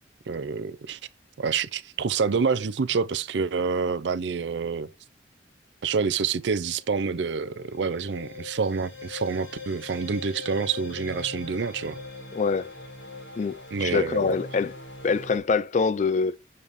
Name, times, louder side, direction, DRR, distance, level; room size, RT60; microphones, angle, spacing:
voice 1, 0.3-1.0 1.4-4.9 5.8-12.0 13.7-14.4, right 5 dB, 75° right, 0.5 m, -27 dB
sound 1, 6.7-15.4, left 3 dB, 85° left, 3.9 m, -41 dB
voice 2, 12.3-12.7 13.4-14.7 15.0-16.4, left 5 dB, 40° left, 0.3 m, -25 dB
6.7 x 5.3 x 3.0 m
head